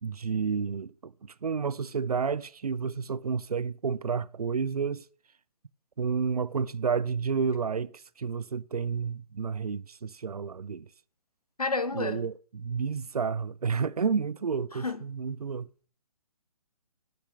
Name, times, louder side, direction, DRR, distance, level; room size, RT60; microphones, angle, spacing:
voice 1, 0.0-5.0 6.0-10.9 11.9-15.7, right 5 dB, 80° right, 0.5 m, -30 dB
voice 2, 11.6-12.2 14.8-15.0, left 3 dB, 80° left, 1.5 m, -29 dB
8.4 x 6.0 x 8.0 m
figure-of-eight pair, 140°, 19 cm